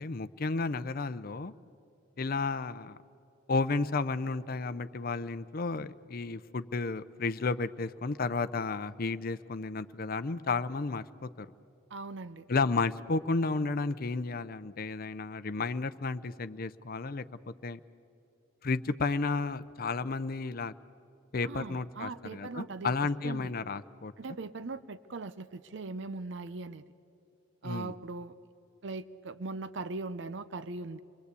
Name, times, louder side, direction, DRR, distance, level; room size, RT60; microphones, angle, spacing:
voice 1, 0.0-1.5 2.2-3.0 3.5-11.5 12.5-17.8 18.6-20.7 21.3-24.1 27.6-27.9, left 3 dB, 50° left, 12 dB, 0.6 m, -32 dB
voice 2, 11.9-12.5 21.4-22.9 23.2-23.5 24.2-26.8 27.6-28.3 28.8-31.0, right 3 dB, 65° right, 13 dB, 0.6 m, -40 dB
27.0 x 21.0 x 8.3 m, 2.8 s
head